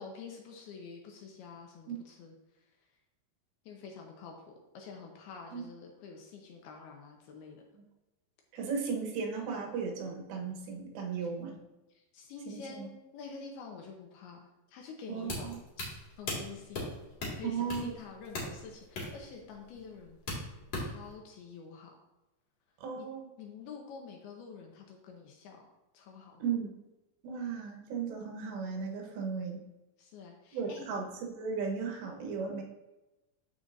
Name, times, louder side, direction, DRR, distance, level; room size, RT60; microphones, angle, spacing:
voice 1, 0.0-2.7 3.7-7.6 11.2-11.3 11.9-15.9 16.2-20.2 20.7-22.0 23.0-23.1 23.4-25.7 25.9-26.4 30.0-30.9, left 5 dB, 75° left, 1 dB, 2.5 m, -48 dB
voice 2, 8.5-11.6 12.5-12.9 15.1-15.3 17.4-17.9 22.8-23.3 26.4-26.7 27.2-29.6 30.5-32.6, right 5 dB, 80° right, 1 dB, 3.3 m, -36 dB
sound 1, 15.2-21.1, left 2 dB, 45° left, 2.5 m, -40 dB
12.5 x 5.0 x 2.5 m, 1.0 s
omnidirectional pair, 5.0 m